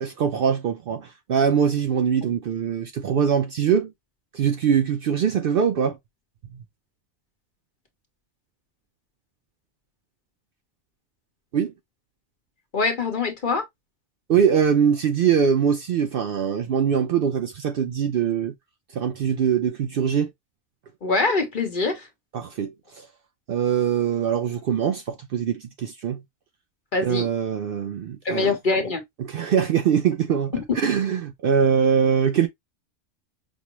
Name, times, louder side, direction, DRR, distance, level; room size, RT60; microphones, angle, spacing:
voice 1, 0.0-3.9 4.3-6.0 11.5-11.7 14.3-18.5 18.9-20.3 22.3-23.1 23.5-26.2 27.0-28.6 29.2-32.5, right 7 dB, 60° right, 0.6 m, -22 dB
voice 2, 12.7-13.6 21.0-22.1 26.9-27.3 28.2-29.0 30.5-30.6, left 3 dB, 45° left, 1.1 m, -24 dB
5.2 x 2.0 x 2.9 m
omnidirectional pair, 1.2 m